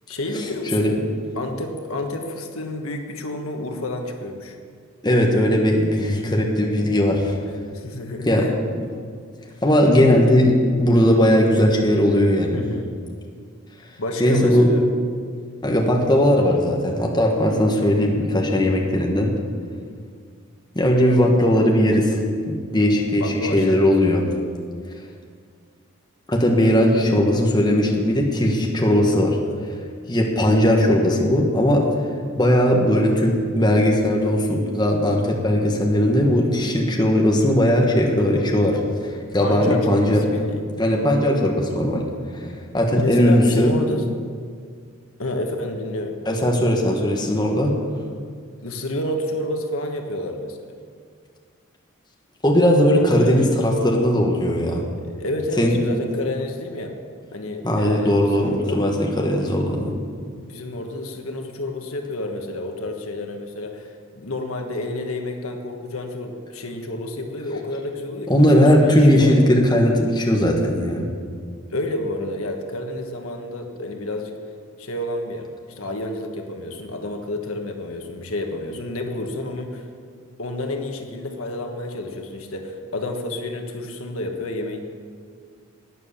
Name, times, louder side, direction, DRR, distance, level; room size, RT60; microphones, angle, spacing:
voice 1, 0.1-0.9 1.3-4.6 7.7-8.6 12.5-12.9 14.0-14.9 23.2-23.8 28.9-29.2 39.4-40.6 43.0-44.0 45.2-46.2 48.6-50.6 53.2-53.5 55.1-57.0 57.3-58.8 60.4-69.3 71.7-74.3 74.8-79.8 80.4-84.8, left 1 dB, 85° left, 4 dB, 1.4 m, -29 dB
voice 2, 5.0-7.3 8.2-8.5 9.6-12.6 14.2-14.7 15.6-19.3 20.7-22.2 22.5-24.2 26.3-29.4 30.1-31.8 32.4-40.2 40.8-42.0 42.3-42.5 42.7-43.7 46.3-47.7 52.4-54.8 55.6-55.8 57.6-59.9 68.3-71.1, equal, 20° left, 0 dB, 1.4 m, -18 dB
12.0 x 9.5 x 7.3 m, 2.1 s
head